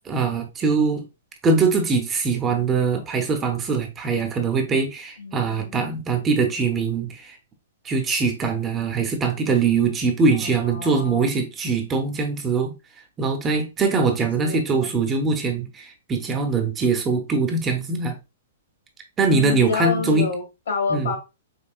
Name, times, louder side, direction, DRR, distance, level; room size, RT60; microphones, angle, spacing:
voice 1, 0.0-1.0 1.4-7.4 7.8-12.7 13.2-18.1 19.2-20.3 20.9-21.1, right 4 dB, 15° right, 0.7 m, -22 dB
voice 2, 5.2-6.1 10.3-11.3 14.4-14.9 19.3-21.2, left 5 dB, 85° left, 2.0 m, -29 dB
5.4 x 2.1 x 2.4 m
hypercardioid pair, 150°, 0 cm